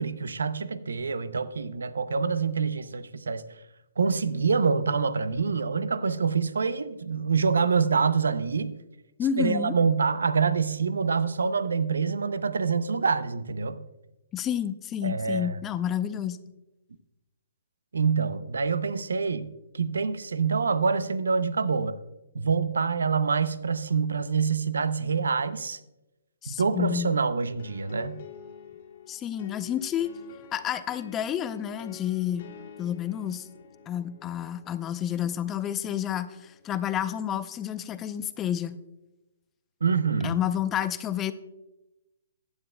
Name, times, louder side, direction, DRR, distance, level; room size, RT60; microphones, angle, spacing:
voice 1, 0.0-3.4 4.0-8.8 9.4-13.8 15.0-15.6 17.9-22.0 22.3-25.8 26.5-28.2 39.8-40.4, right 5 dB, 80° right, 14 dB, 0.6 m, -26 dB
voice 2, 9.2-9.7 14.3-16.4 26.4-27.1 29.1-30.1 30.5-32.5 32.8-33.5 33.9-38.8 40.2-41.3, left 9 dB, 20° left, 12 dB, 0.5 m, -30 dB
sound 1, 27.6-37.2, left 8 dB, 55° left, 1.7 m, -49 dB
15.0 x 9.6 x 2.2 m, 0.98 s
hypercardioid pair, 140°, 0 cm